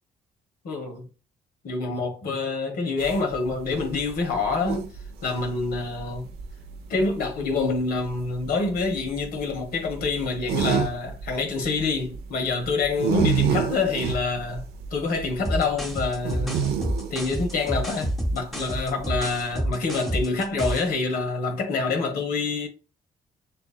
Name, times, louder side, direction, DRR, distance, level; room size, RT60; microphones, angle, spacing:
voice 1, 0.6-1.1 1.6-4.9 5.2-6.3 6.9-14.6 14.9-16.6 17.1-22.7, left 3 dB, 70° left, 1.8 m, -26 dB
sound 1, 3.0-19.6, right 7 dB, 80° right, 0.8 m, -30 dB
sound 2, 15.4-20.9, right 1 dB, ahead, 1.3 m, -29 dB
6.5 x 2.8 x 2.2 m
supercardioid pair, 60°, 16 cm